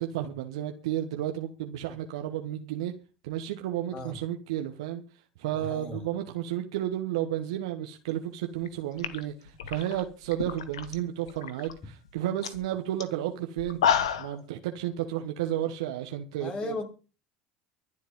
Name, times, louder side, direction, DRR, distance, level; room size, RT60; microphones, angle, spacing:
voice 1, 0.0-2.9 3.2-5.0 5.4-13.8 14.2-16.7, right 12 dB, 75° right, 1.3 m, -32 dB
voice 2, 5.5-6.0 16.4-16.9, left 3 dB, 35° left, 4.1 m, -35 dB
sound 1, 8.6-8.7 9.0-11.0 11.3-11.7 12.1-12.2 12.4-12.6 13.0-13.1 13.6-14.4, left 8 dB, 80° left, 1.4 m, -29 dB
24.0 x 8.2 x 3.7 m
hypercardioid pair, 75°, 3 cm